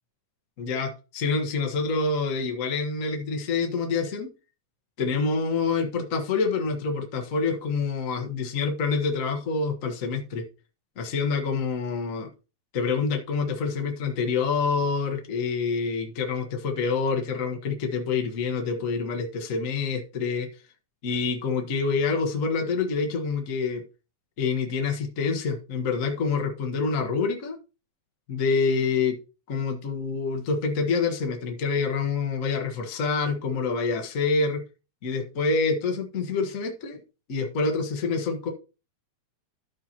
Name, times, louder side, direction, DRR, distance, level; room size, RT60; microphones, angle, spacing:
voice 1, 0.6-4.3 5.0-10.4 11.0-12.3 12.7-20.5 21.0-23.8 24.4-27.6 28.3-29.2 29.5-34.6 35.0-37.0 37.3-38.5, left 4 dB, 50° left, 3 dB, 0.9 m, -27 dB
13.0 x 5.2 x 2.9 m, 0.32 s
omnidirectional pair, 3.4 m